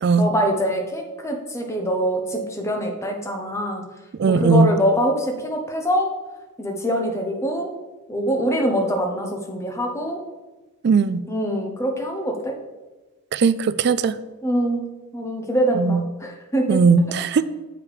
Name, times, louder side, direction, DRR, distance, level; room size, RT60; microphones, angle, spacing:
voice 1, 0.2-3.8 4.2-6.1 6.6-7.7 8.1-10.2 11.3-12.5 14.4-16.8, equal, 15° left, 2 dB, 0.9 m, -24 dB
voice 2, 4.2-4.7 10.8-11.2 13.3-14.2 15.8-16.0 16.7-17.4, right 4 dB, 50° right, 14 dB, 0.3 m, -18 dB
7.0 x 5.0 x 4.9 m, 1.2 s
head